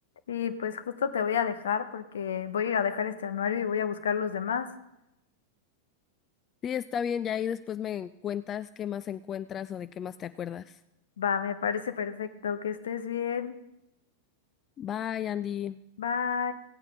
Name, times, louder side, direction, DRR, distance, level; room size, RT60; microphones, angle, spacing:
voice 1, 0.3-4.7 11.2-13.5 16.0-16.5, left 7 dB, 65° left, 11 dB, 0.9 m, -30 dB
voice 2, 6.6-10.8 14.8-15.8, left 9 dB, 25° left, 14 dB, 0.3 m, -33 dB
16.5 x 8.6 x 4.8 m, 0.89 s
figure-of-eight pair, 90°, 0 cm